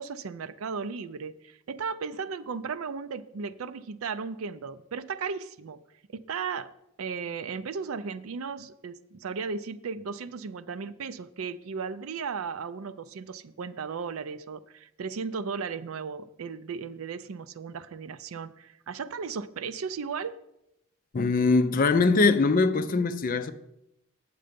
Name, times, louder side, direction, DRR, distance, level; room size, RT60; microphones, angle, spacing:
voice 1, 0.0-5.8 6.1-6.7 7.0-20.4, right 5 dB, 70° right, 0.5 m, -35 dB
voice 2, 21.1-23.5, left 3 dB, 40° left, 0.5 m, -22 dB
8.6 x 6.7 x 5.1 m
head